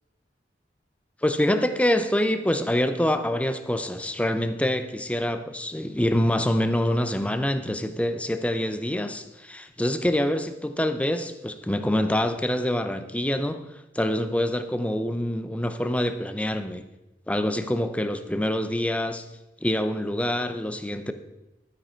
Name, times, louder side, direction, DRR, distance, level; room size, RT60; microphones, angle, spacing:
voice 1, 1.2-13.6 13.9-16.8 17.3-19.2 19.6-21.1, left 1 dB, 10° left, 9 dB, 0.7 m, -25 dB
12.0 x 9.7 x 4.5 m, 0.96 s
head